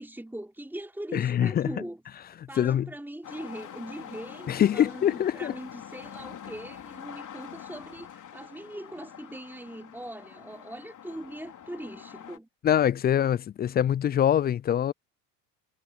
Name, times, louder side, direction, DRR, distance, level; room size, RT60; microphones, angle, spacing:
voice 1, 0.0-2.0 2.5-12.5, right 1 dB, 5° right, 4.0 m, -41 dB
voice 2, 1.1-1.7 2.6-2.9 4.5-5.5 12.6-14.9, left 10 dB, 20° left, 0.4 m, -24 dB
sound 1, 3.2-12.4, left 9 dB, 40° left, 3.2 m, -45 dB
hypercardioid pair, 75°, 48 cm